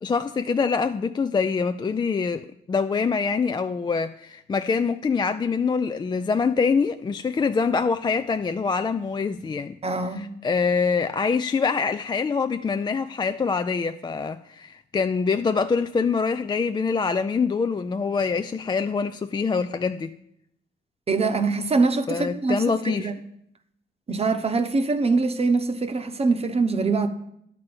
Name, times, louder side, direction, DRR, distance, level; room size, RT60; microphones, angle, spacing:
voice 1, 0.0-9.8 10.2-20.1 22.1-23.1, left 5 dB, 20° left, 0.3 m, -25 dB
voice 2, 9.8-10.3 21.1-23.1 24.1-27.1, right 3 dB, 30° right, 0.9 m, -23 dB
10.5 x 4.4 x 7.8 m
cardioid pair, 90°, 20 cm